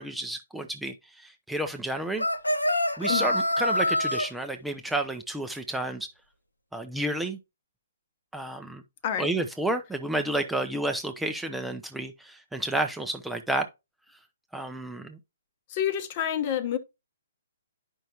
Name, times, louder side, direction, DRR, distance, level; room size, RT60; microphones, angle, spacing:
voice 1, 0.0-2.2 3.0-6.1 6.7-7.4 8.3-8.8 9.2-13.7 14.5-15.2, right 1 dB, 5° right, 0.5 m, -31 dB
sound 1, 2.2-4.3, left 1 dB, 85° left, 0.8 m, -25 dB
voice 2, 15.7-16.8, left 9 dB, 35° left, 0.9 m, -28 dB
10.0 x 5.4 x 2.9 m
figure-of-eight pair, 125°, 0 cm